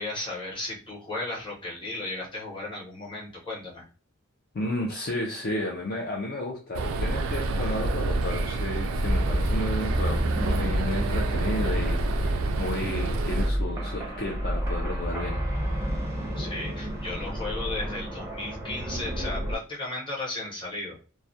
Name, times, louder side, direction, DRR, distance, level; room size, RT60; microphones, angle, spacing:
voice 1, 0.0-3.8 16.4-21.0, left 2 dB, 25° left, -4 dB, 0.8 m, -35 dB
voice 2, 4.5-15.4, left 1 dB, 45° left, -1 dB, 0.4 m, -33 dB
sound 1, 6.7-13.5, right 2 dB, 70° right, 0.3 m, -28 dB
sound 2, 9.0-19.6, equal, 10° right, 0.5 m, -30 dB
2.3 x 2.1 x 2.6 m, 0.36 s
head